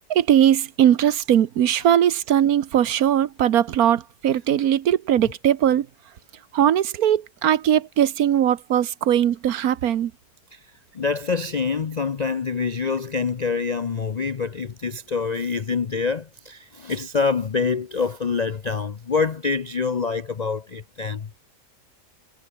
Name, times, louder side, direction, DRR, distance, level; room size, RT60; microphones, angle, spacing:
voice 1, 0.1-5.9 6.5-10.1, right 10 dB, 70° right, 1.4 m, -20 dB
voice 2, 10.9-21.3, left 5 dB, 50° left, 0.5 m, -26 dB
omnidirectional pair, 1.6 m